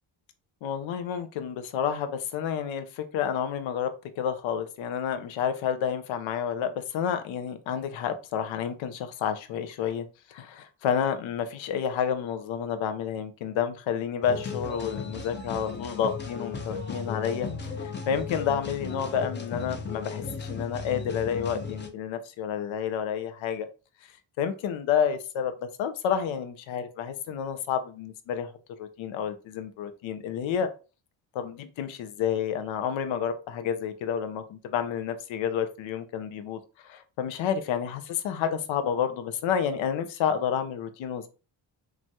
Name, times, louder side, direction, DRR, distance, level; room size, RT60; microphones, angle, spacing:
voice 1, 0.6-17.5 17.8-23.7 24.4-25.5 25.8-28.5 28.8-30.7 31.3-41.3, left 8 dB, 75° left, 9 dB, 0.6 m, -30 dB
sound 1, 14.2-21.9, left 5 dB, 25° left, 0.5 m, -35 dB
3.0 x 2.3 x 2.6 m, 0.33 s
cardioid pair, 75°, 47 cm